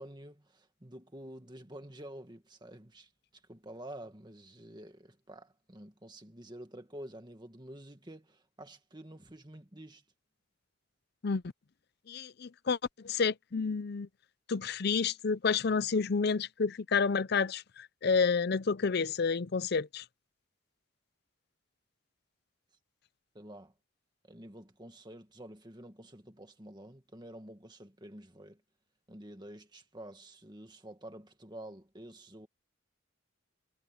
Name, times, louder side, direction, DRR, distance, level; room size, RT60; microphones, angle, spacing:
voice 1, 0.0-10.0 23.3-23.7 24.2-28.6 29.1-32.5, right 1 dB, 20° right, 1.9 m, -49 dB
voice 2, 12.1-12.8 13.0-14.1 14.5-20.0, left 5 dB, 50° left, 0.5 m, -30 dB
head